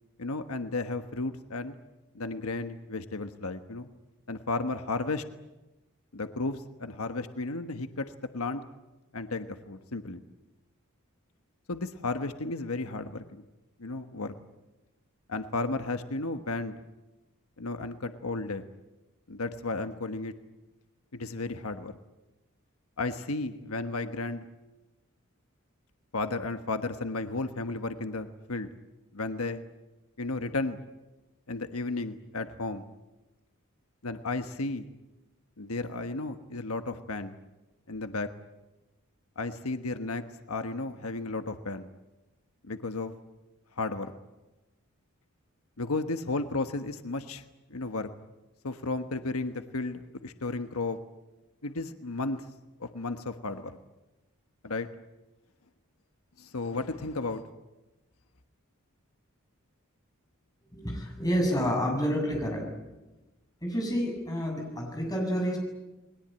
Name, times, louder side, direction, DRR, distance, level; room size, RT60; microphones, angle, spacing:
voice 1, 0.2-1.8 2.1-3.9 4.3-5.2 6.1-8.6 9.1-10.2 11.7-13.4 13.8-14.3 15.3-16.7 17.6-18.6 19.3-20.3 21.1-21.9 23.0-24.4 26.1-28.7 29.1-29.6 30.2-30.8 31.5-32.8 34.0-34.9 35.6-37.3 37.9-38.3 39.4-41.9 42.6-43.1 43.8-44.1 45.8-47.4 47.7-48.1 48.6-51.0 51.6-52.5 52.8-53.8 54.6-54.9 56.4-57.4, left 3 dB, 85° left, 8 dB, 1.3 m, -33 dB
voice 2, 60.7-62.6 63.6-65.6, equal, 15° left, 1 dB, 7.5 m, -29 dB
30.0 x 21.0 x 9.0 m, 1.1 s
head